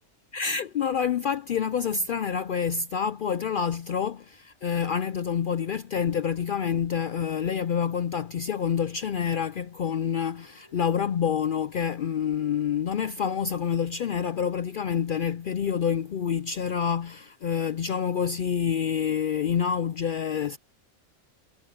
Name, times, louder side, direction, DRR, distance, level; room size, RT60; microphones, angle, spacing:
voice 1, 0.3-20.6, left 7 dB, 60° left, 0.5 m, -27 dB
sound 1, 4.3-11.8, left 1 dB, 25° left, 3.8 m, -63 dB
omnidirectional pair, 1.3 m